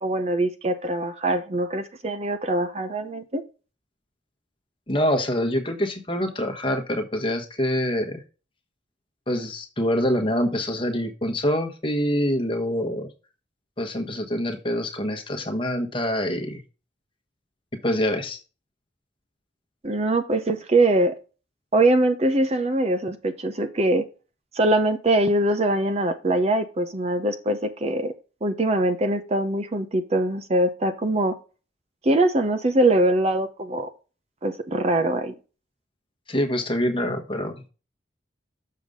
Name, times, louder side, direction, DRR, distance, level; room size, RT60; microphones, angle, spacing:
voice 1, 0.0-3.4 19.8-21.1 21.7-24.0 24.5-28.1 28.4-31.3 32.0-33.9 34.4-35.3, right 1 dB, 35° right, 9 dB, 0.7 m, -22 dB
voice 2, 4.9-8.2 9.3-13.1 13.8-16.6 17.8-18.4 36.3-37.7, equal, 25° left, 5 dB, 1.2 m, -25 dB
7.0 x 6.6 x 3.6 m, 0.33 s
head